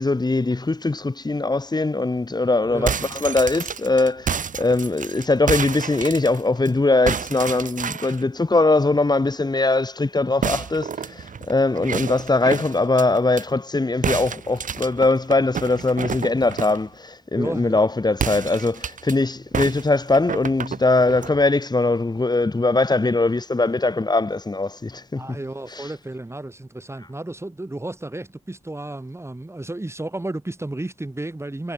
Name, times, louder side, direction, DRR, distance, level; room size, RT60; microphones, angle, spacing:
voice 1, 0.0-25.4 25.7-25.9, left 2 dB, 30° left, 2.2 m, -21 dB
sound 1, 2.7-6.7 7.1-8.2 10.4-13.4 14.0-16.9 18.1-19.1 19.5-21.3, right 7 dB, 75° right, 1.1 m, -29 dB
voice 2, 17.3-17.9 25.2-31.7, right 2 dB, 20° right, 2.4 m, -32 dB
cardioid pair, 70°, 14 cm